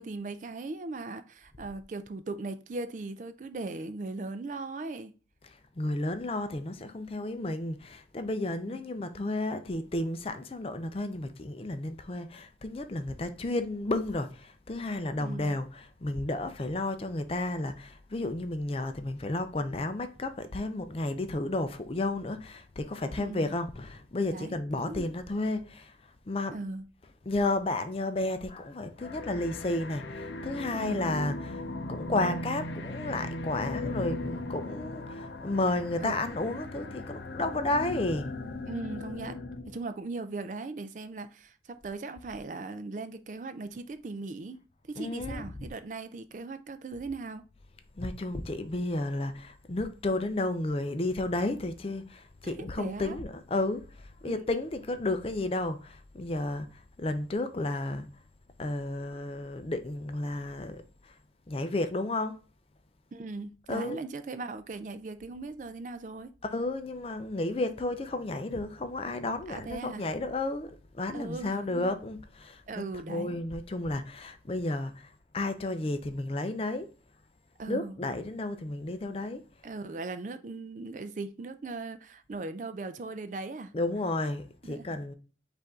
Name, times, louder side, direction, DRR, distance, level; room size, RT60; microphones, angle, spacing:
voice 1, 0.0-5.1 8.7-8.8 15.2-15.5 23.2-23.6 24.3-24.6 24.9-25.0 26.5-26.8 30.7-31.1 36.0-36.1 36.5-36.7 38.7-39.4 39.7-44.6 44.9-47.4 52.4-53.2 54.3-54.4 63.1-66.3 69.5-70.0 71.1-71.9 72.7-73.4 77.6-78.0 79.6-83.7 84.6-85.0, right 3 dB, 45° right, 0.4 m, -39 dB
voice 2, 5.8-26.0 26.3-26.6 27.3-31.6 31.9-38.3 45.0-45.4 48.0-58.1 58.6-61.1 61.5-62.4 63.7-64.0 66.4-76.9 77.7-79.4 83.7-85.1, left 2 dB, 30° left, 0.4 m, -32 dB
sound 1, 29.0-39.8, left 2 dB, 90° left, 0.5 m, -38 dB
5.4 x 2.6 x 3.5 m
head